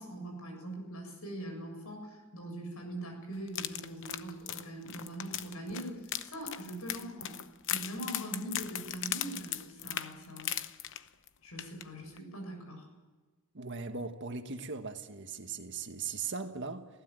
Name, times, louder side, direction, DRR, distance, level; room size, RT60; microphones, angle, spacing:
voice 1, 0.0-7.4 7.7-10.5 11.4-12.9, right 1 dB, 85° left, 7.3 m, -42 dB
sound 1, 3.5-11.3 11.6-11.8 12.2-12.3, left 11 dB, 60° left, 0.9 m, -38 dB
voice 2, 13.5-16.9, right 5 dB, 55° right, 1.6 m, -39 dB
20.5 x 16.0 x 9.0 m
head